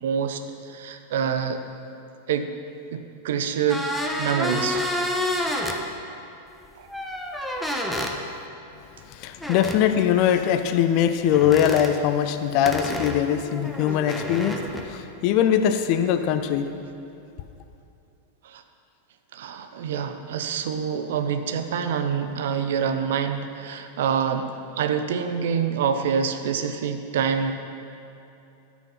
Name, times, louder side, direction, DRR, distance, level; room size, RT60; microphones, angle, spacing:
voice 1, 0.0-1.6 2.3-2.5 2.9-3.9 4.2-4.8 6.8-6.9 18.4-18.6 19.3-24.5 24.8-27.5, right 7 dB, 55° right, 8 dB, 0.7 m, -26 dB
sound 1, 3.7-5.8 6.9-8.1 9.4-9.8 11.3-11.9 12.7-14.8, left 1 dB, ahead, 0.9 m, -29 dB
voice 2, 9.1-16.7, left 9 dB, 45° left, 8 dB, 0.6 m, -22 dB
12.5 x 6.2 x 5.6 m, 2.7 s
figure-of-eight pair, 90°, 0 cm